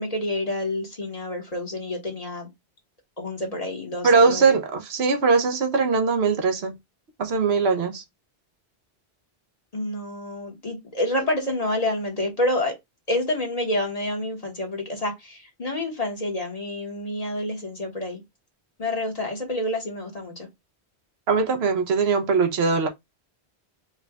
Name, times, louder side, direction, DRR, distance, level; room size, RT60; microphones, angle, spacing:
voice 1, 0.0-2.5 3.2-4.6 9.7-12.7 13.1-18.2 18.8-20.5, left 1 dB, 35° left, 1.1 m, -28 dB
voice 2, 4.0-6.8 7.2-8.0 21.3-22.9, right 4 dB, 70° right, 1.1 m, -21 dB
4.7 x 2.3 x 3.4 m
omnidirectional pair, 1.1 m